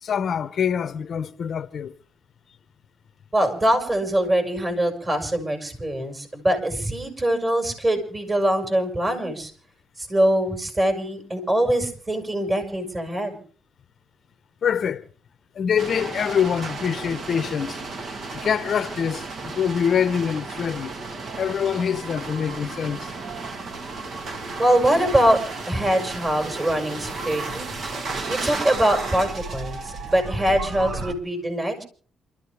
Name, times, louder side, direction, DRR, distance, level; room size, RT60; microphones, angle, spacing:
voice 1, 0.0-1.9 14.6-15.0 15.5-17.8 18.3-20.9 21.4-23.1, left 7 dB, 55° left, 0.9 m, -25 dB
voice 2, 3.3-9.5 10.0-13.4 24.6-25.4 25.7-27.7 28.3-31.8, right 1 dB, 25° right, 5.6 m, -23 dB
sound 1, 15.8-31.1, right 3 dB, 55° right, 2.5 m, -33 dB
28.0 x 13.5 x 3.4 m
cardioid pair, 90°, 0 cm